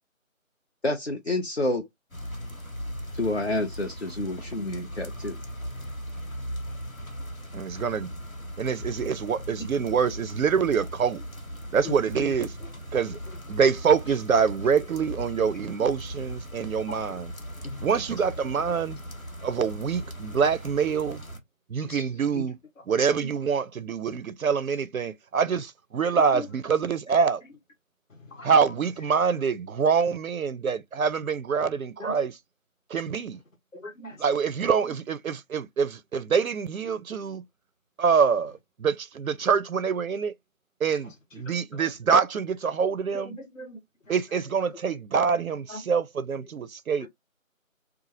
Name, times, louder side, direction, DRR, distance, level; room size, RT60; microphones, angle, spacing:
voice 1, 0.8-1.8 3.1-5.4, left 2 dB, 55° left, 0.5 m, -28 dB
sound 1, 2.1-21.4, equal, 90° left, 1.4 m, -38 dB
voice 2, 7.5-8.1 8.6-11.2 11.7-12.5 12.9-13.2 13.5-17.3 17.8-19.0 19.4-21.2 21.7-22.6 22.9-27.4 28.4-32.3 32.9-33.4 34.2-37.4 38.0-40.3 40.8-43.3 44.1-47.1, right 6 dB, 85° right, 0.5 m, -25 dB
voice 3, 11.8-12.3 16.9-17.0 17.6-17.9 21.8-22.4 22.8-22.9 23.2-23.3 26.3-26.5 28.2-28.5 32.0-32.2 33.7-34.2 41.0-41.9 43.1-43.8 44.1-44.2 44.7-44.9 45.7-45.8 46.4-46.5 47.0-47.1, left 1 dB, 70° left, 0.9 m, -40 dB
2.9 x 2.3 x 2.4 m
figure-of-eight pair, 175°, 41 cm